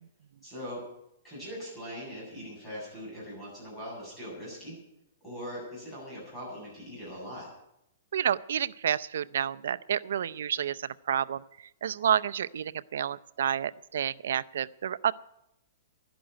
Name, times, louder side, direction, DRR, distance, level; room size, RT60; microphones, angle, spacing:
voice 1, 0.4-0.8 1.2-4.8 5.2-7.5, equal, 10° left, -6 dB, 7.9 m, -41 dB
voice 2, 8.1-15.1, right 9 dB, 70° right, 16 dB, 0.5 m, -30 dB
11.5 x 11.0 x 9.2 m, 0.81 s
hypercardioid pair, 175°, 0 cm